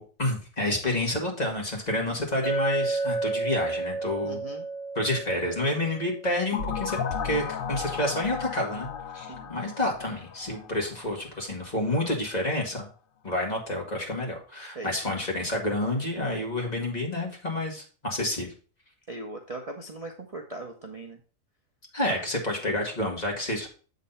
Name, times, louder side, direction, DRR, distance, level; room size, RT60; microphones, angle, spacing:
voice 1, 0.0-4.4 5.0-7.0 7.2-8.9 9.1-12.9 13.2-18.5 21.9-23.7, left 1 dB, 30° left, 0 dB, 1.9 m, -29 dB
Chink clink, 2.4-6.6, right 3 dB, 80° left, 1.6 m, -31 dB
voice 2, 4.2-4.6 9.3-9.5 14.7-14.9 16.6-16.9 19.1-21.2 22.1-22.2, right 2 dB, 30° right, 1 dB, 0.8 m, -40 dB
sound 1, 6.5-11.2, left 6 dB, 50° left, 0.7 m, -34 dB
7.4 x 4.0 x 5.5 m, 0.37 s
omnidirectional pair, 1.4 m